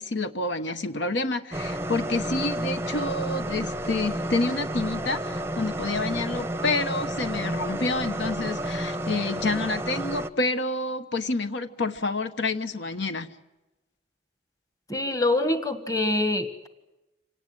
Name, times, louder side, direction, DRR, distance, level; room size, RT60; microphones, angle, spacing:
voice 1, 0.0-13.3, left 2 dB, 65° left, 9 dB, 1.2 m, -28 dB
sound 1, 1.5-10.3, right 1 dB, 15° right, 0.8 m, -31 dB
voice 2, 14.9-16.7, left 2 dB, 15° left, 9 dB, 1.6 m, -25 dB
26.0 x 18.5 x 8.9 m, 1.0 s
head